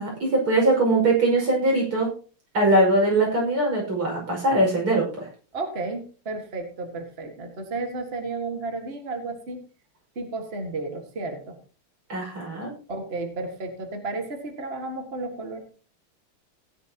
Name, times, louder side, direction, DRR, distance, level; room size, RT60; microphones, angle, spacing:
voice 1, 0.0-2.1 2.5-5.3 12.1-12.7, right 2 dB, 80° right, -2 dB, 6.5 m, -21 dB
voice 2, 5.5-9.6 10.2-11.6 12.9-15.6, right 3 dB, 30° right, 4 dB, 1.8 m, -33 dB
17.5 x 10.5 x 2.9 m, 0.37 s
omnidirectional pair, 2.4 m